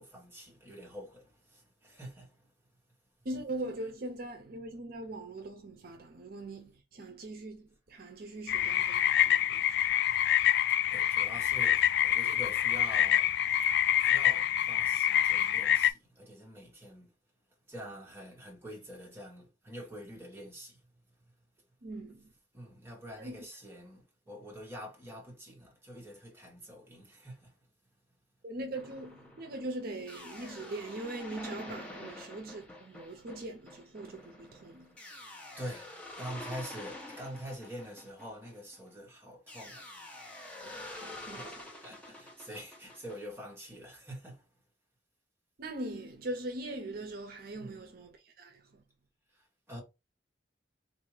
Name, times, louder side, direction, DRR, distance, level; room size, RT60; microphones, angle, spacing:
voice 1, 0.0-2.4 10.8-13.4 14.0-17.1 17.7-20.8 22.5-27.5 31.7-31.8 35.5-39.9 41.4-44.5 47.5-47.8 49.4-49.8, equal, 15° right, 1.3 m, -46 dB
voice 2, 3.2-10.0 21.8-22.3 23.2-23.4 28.4-35.0 40.6-41.7 45.6-48.8, right 2 dB, 55° right, 0.6 m, -41 dB
sound 1, 8.5-15.9, left 11 dB, 65° left, 0.3 m, -26 dB
sound 2, 28.7-38.9 39.5-43.2, left 1 dB, 5° left, 0.8 m, -47 dB
3.6 x 2.7 x 3.1 m
head